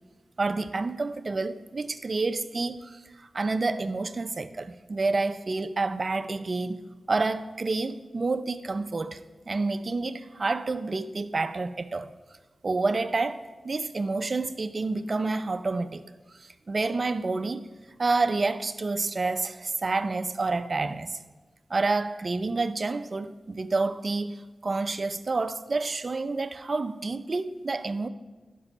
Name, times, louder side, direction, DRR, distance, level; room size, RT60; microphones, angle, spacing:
voice 1, 0.4-9.2 9.5-12.1 12.6-16.0 16.4-17.6 18.0-21.2 21.7-28.1, right 3 dB, 45° right, 0.5 m, -29 dB
11.0 x 5.4 x 6.0 m
cardioid pair, 70°, 0 cm